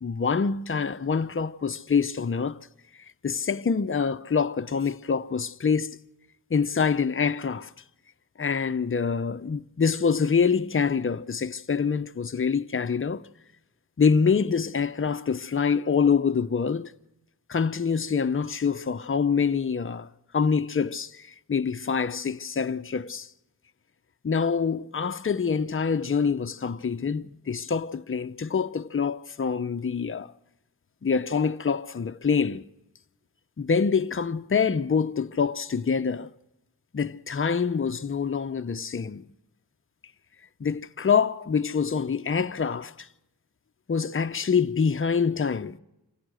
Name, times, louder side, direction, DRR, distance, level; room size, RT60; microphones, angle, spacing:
voice 1, 0.0-2.6 3.2-6.0 6.5-7.7 8.4-13.2 14.0-16.9 17.5-23.3 24.2-30.3 31.0-32.6 33.6-36.3 36.9-39.2 40.6-43.1 43.9-45.8, left 6 dB, 30° left, 0.7 m, -25 dB
26.0 x 16.5 x 6.3 m
cardioid pair, 70°, 39 cm